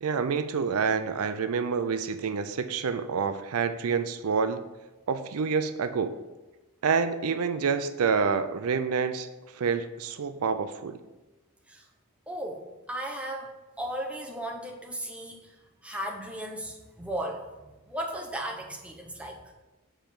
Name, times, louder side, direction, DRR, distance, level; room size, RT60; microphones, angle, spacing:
voice 1, 0.0-4.6 5.1-6.2 6.8-9.3 9.5-11.0, right 5 dB, 80° right, 10 dB, 0.5 m, -28 dB
voice 2, 12.3-13.5 13.8-15.6 15.8-19.5, right 1 dB, 5° right, 0 dB, 0.8 m, -36 dB
7.0 x 4.5 x 5.5 m, 1.1 s
head